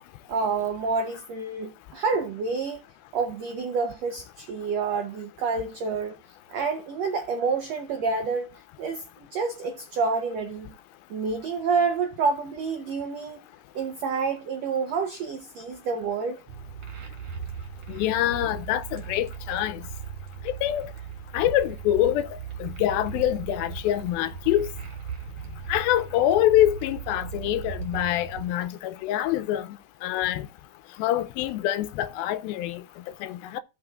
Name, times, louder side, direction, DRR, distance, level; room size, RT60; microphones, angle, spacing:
voice 1, 0.3-2.8 3.1-6.2 6.5-8.5 8.8-9.0 9.3-10.7 11.1-13.4 13.7-16.4, right 4 dB, 85° right, 1.4 m, -28 dB
sound 1, 16.5-28.5, right 7 dB, 45° right, 3.1 m, -38 dB
voice 2, 17.9-19.8 20.5-20.9 21.3-24.7 25.7-30.5 31.0-32.8 33.2-33.6, left 13 dB, 90° left, 2.5 m, -25 dB
16.0 x 5.8 x 2.4 m
omnidirectional pair, 4.2 m